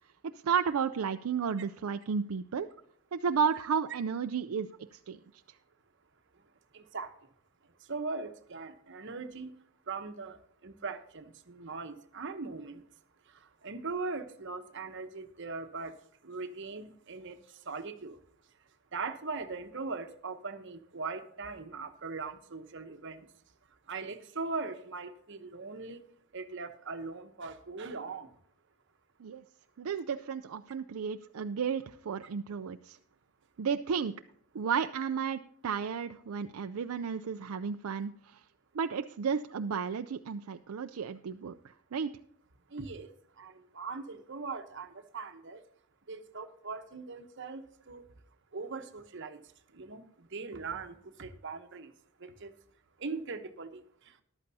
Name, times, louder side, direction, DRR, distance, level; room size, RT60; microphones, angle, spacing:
voice 1, 0.2-2.7 3.1-5.2 29.2-29.4 29.8-33.0 33.6-34.1 34.5-38.4 38.7-41.6 41.9-42.1, right 6 dB, 75° right, 8 dB, 0.4 m, -33 dB
voice 2, 6.7-7.1 7.9-9.5 9.9-12.8 13.3-15.9 16.2-18.2 18.9-23.3 23.9-26.0 26.3-28.3 42.7-43.1 43.4-45.6 46.1-48.0 48.5-49.4 49.7-51.9 52.2-52.5 53.0-54.2, right 4 dB, 55° right, 8 dB, 1.0 m, -40 dB
14.0 x 11.5 x 2.8 m, 0.67 s
head